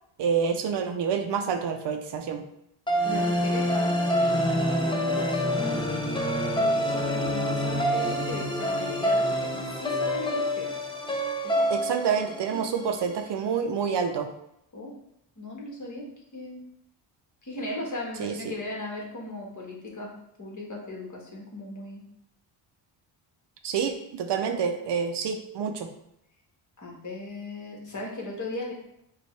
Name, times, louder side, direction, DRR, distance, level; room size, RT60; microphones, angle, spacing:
voice 1, 0.2-2.4 11.7-14.3 18.2-18.5 23.6-25.9, right 6 dB, 55° right, 6 dB, 0.6 m, -28 dB
sound 1, 2.9-13.1, equal, 10° left, 0.6 m, -26 dB
voice 2, 3.0-5.7 6.5-10.7 11.4-11.7 14.7-14.9 15.4-16.1 16.3-16.6 17.4-20.1 20.4-22.0 26.8-28.7, left 2 dB, 35° left, -2 dB, 1.4 m, -37 dB
5.1 x 2.4 x 3.2 m, 0.78 s
cardioid pair, 70°, 50 cm